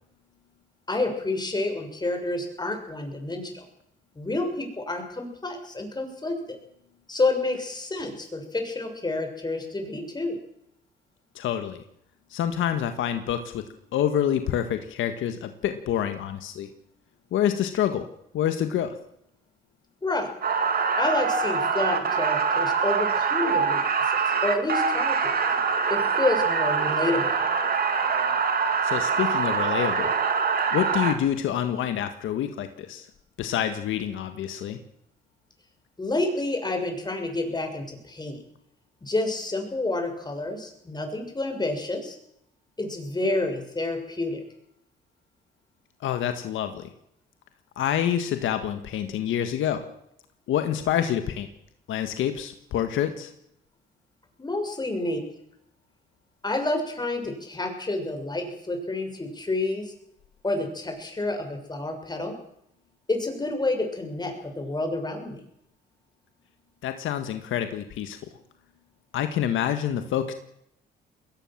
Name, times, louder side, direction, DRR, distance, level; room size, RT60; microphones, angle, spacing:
voice 1, 0.9-3.6 4.2-6.6 7.1-10.4 20.0-20.3 21.0-23.8 24.1-25.3 25.9-27.4 36.0-38.4 39.0-42.2 42.8-44.4 54.4-55.2 56.4-59.9 60.4-62.3 63.1-65.4, left 2 dB, 20° left, 4 dB, 6.3 m, -29 dB
voice 2, 11.4-11.8 12.3-13.6 13.9-16.7 17.3-18.1 18.3-18.9 28.8-30.1 30.7-33.1 33.4-34.8 46.0-46.9 47.8-49.8 50.5-51.5 51.9-53.3 66.8-68.2 69.1-70.3, left 10 dB, 80° left, 8 dB, 1.7 m, -27 dB
sound 1, 20.4-31.1, right 5 dB, 50° right, 3.2 m, -24 dB
21.0 x 18.0 x 7.5 m, 0.75 s
cardioid pair, 90°, 20 cm